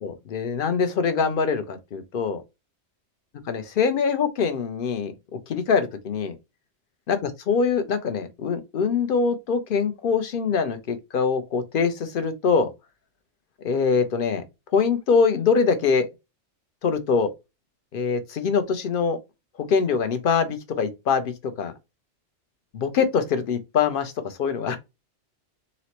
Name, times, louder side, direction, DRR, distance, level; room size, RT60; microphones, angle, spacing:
voice 1, 0.0-2.4 3.5-5.1 5.5-6.4 7.1-12.7 13.6-14.4 14.7-16.1 16.8-17.3 17.9-19.2 19.7-21.3 21.6-21.7 22.7-24.8, left 5 dB, 60° left, 0.7 m, -23 dB
3.9 x 2.1 x 2.8 m
omnidirectional pair, 1.2 m